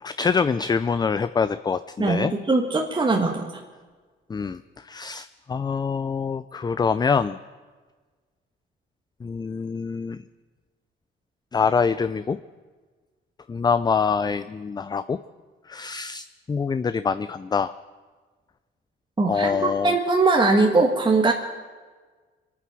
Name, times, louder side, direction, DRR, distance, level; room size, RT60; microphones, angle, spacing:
voice 1, 0.0-2.3 4.3-7.4 9.2-10.2 11.5-12.4 13.5-15.2 15.7-17.7 19.3-20.0, left 5 dB, 20° left, 13 dB, 0.4 m, -25 dB
voice 2, 2.0-3.5 19.2-21.3, right 3 dB, 25° right, 0 dB, 1.5 m, -21 dB
24.5 x 9.5 x 6.1 m, 1.4 s
cardioid pair, 90°, 20 cm